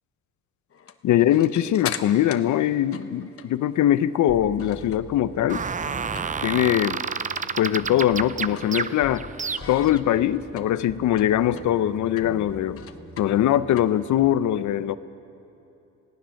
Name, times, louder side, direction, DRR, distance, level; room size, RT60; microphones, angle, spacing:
sound 1, 0.7-5.2 5.5-6.7 6.9-7.0 7.4-7.6 7.9-9.2 9.6-14.4, left 8 dB, 50° left, 1.1 m, -40 dB
voice 1, 1.0-5.6 6.4-7.0 7.6-9.2 9.7-12.8 13.2-15.0, left 11 dB, 70° left, 14 dB, 0.7 m, -22 dB
sound 2, 4.3-9.3 9.6-14.4, left 1 dB, 15° left, 2.9 m, -44 dB
sound 3, 5.5-10.0, right 5 dB, 25° right, 0.6 m, -30 dB
27.0 x 17.5 x 6.5 m, 2.8 s
cardioid pair, 90°, 30 cm